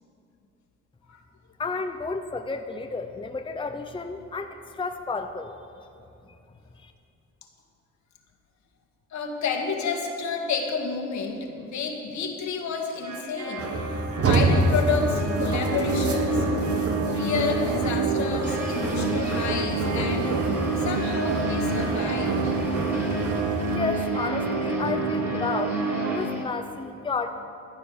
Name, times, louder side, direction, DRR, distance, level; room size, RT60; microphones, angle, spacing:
voice 1, 1.6-5.5 6.8-6.9 23.7-25.8 26.1-27.4, left 4 dB, 15° left, 6 dB, 0.8 m, -32 dB
voice 2, 9.1-13.8 14.2-16.5 17.1-20.5 20.8-22.9, left 5 dB, 70° left, 2 dB, 2.1 m, -30 dB
sound 1, 13.0-26.2, right 3 dB, 65° right, 3.6 m, -28 dB
sound 2, 13.6-23.8, right 3 dB, 50° right, 1.3 m, -28 dB
sound 3, 18.4-26.4, equal, 10° right, 2.6 m, -42 dB
14.0 x 10.0 x 6.9 m, 2.6 s
cardioid pair, 90°, 30 cm